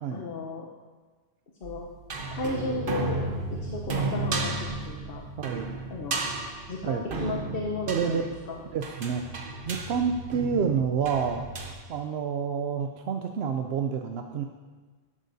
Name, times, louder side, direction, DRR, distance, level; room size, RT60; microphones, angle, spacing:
voice 1, 0.1-0.7 1.6-1.9 2.3-3.2 3.5-5.2 5.9-6.3 6.7-8.2 8.5-8.6, left 2 dB, 55° left, 0 dB, 1.1 m, -34 dB
sound 1, 1.6-11.7, right 3 dB, 50° right, 1.1 m, -34 dB
voice 2, 5.4-5.7 6.8-7.0 7.9-8.2 8.7-9.2 9.7-11.4 11.9-14.4, right 6 dB, 65° right, 5 dB, 0.8 m, -28 dB
12.0 x 11.5 x 2.7 m, 1.4 s
omnidirectional pair, 1.2 m